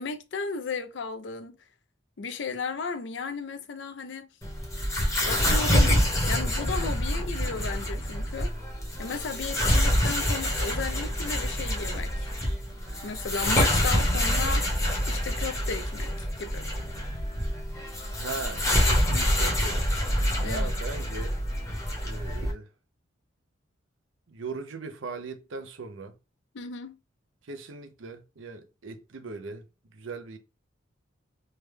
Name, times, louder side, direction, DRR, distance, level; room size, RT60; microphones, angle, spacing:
voice 1, 0.0-1.6 2.2-4.3 5.2-8.5 9.0-12.3 13.0-14.8 15.1-16.7 20.4-20.7 26.5-27.0, left 4 dB, 65° left, 0.5 m, -35 dB
sound 1, 4.4-22.5, equal, 15° left, 0.9 m, -26 dB
voice 2, 18.1-19.9 20.4-21.4 22.0-22.7 24.3-26.2 27.4-30.4, right 4 dB, 85° right, 0.6 m, -39 dB
3.3 x 2.2 x 3.2 m
head